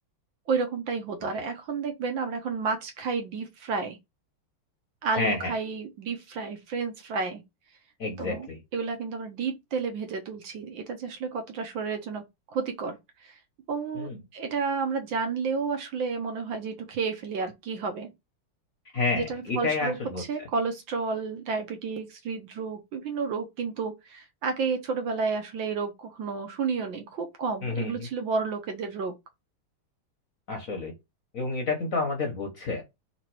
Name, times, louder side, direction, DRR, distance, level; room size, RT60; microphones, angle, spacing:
voice 1, 0.5-4.0 5.0-7.4 8.2-8.5 8.7-12.2 12.5-13.0 13.2-13.4 13.7-18.1 19.1-29.1, right 5 dB, 65° right, 1.5 m, -31 dB
voice 2, 5.2-5.5 8.0-8.6 13.9-14.2 18.9-20.5 27.6-28.1 30.5-30.9 31.3-32.8, left 3 dB, 50° left, 1.0 m, -29 dB
3.8 x 2.9 x 4.5 m
omnidirectional pair, 2.4 m